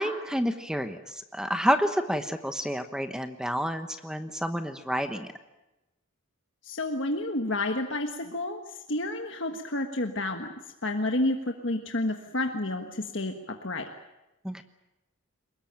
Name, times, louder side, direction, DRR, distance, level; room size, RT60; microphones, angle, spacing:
voice 1, 0.0-5.3 14.4-14.6, equal, 5° right, 8 dB, 1.1 m, -29 dB
voice 2, 6.6-8.6 8.9-10.5 10.8-13.8, left 2 dB, 55° left, 4 dB, 1.5 m, -30 dB
23.5 x 20.5 x 9.0 m, 0.97 s
head